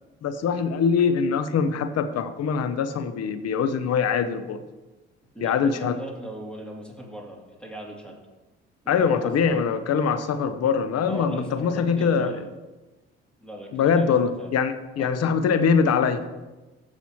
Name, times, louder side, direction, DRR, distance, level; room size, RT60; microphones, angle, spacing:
voice 1, 0.2-4.6 5.4-6.0 8.9-12.4 13.7-16.2, left 6 dB, 55° left, 11 dB, 0.9 m, -23 dB
voice 2, 5.3-8.2 8.8-9.6 11.1-12.5 13.4-14.5 15.0-15.1, right 1 dB, 5° left, -1 dB, 2.9 m, -39 dB
15.0 x 6.1 x 3.1 m, 1.1 s
hypercardioid pair, 55°, 31 cm